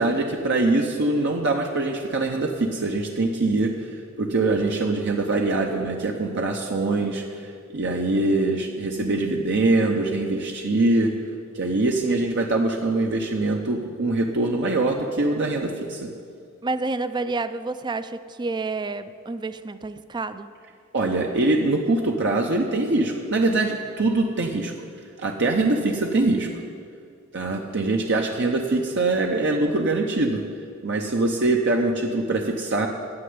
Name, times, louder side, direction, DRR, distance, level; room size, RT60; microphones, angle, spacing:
voice 1, 0.0-3.9 4.2-11.1 11.5-16.1 20.9-24.7 25.2-26.5 27.3-30.4 30.8-32.9, right 2 dB, 60° right, 2 dB, 0.8 m, -23 dB
voice 2, 16.6-20.5, right 3 dB, 20° right, 12 dB, 0.4 m, -29 dB
9.7 x 7.7 x 9.5 m, 2.3 s
head